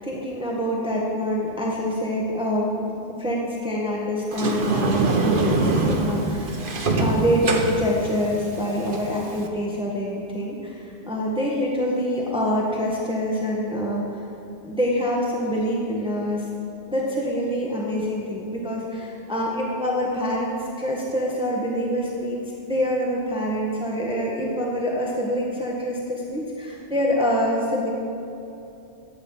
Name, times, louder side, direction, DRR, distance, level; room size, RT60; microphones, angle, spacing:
voice 1, 0.0-6.7 7.0-14.1 14.6-16.5 16.9-27.9, equal, 5° right, -4 dB, 1.6 m, -26 dB
Sliding door, 4.3-9.5, right 3 dB, 50° right, 1.2 m, -24 dB
15.0 x 9.5 x 5.7 m, 2.8 s
omnidirectional pair, 1.2 m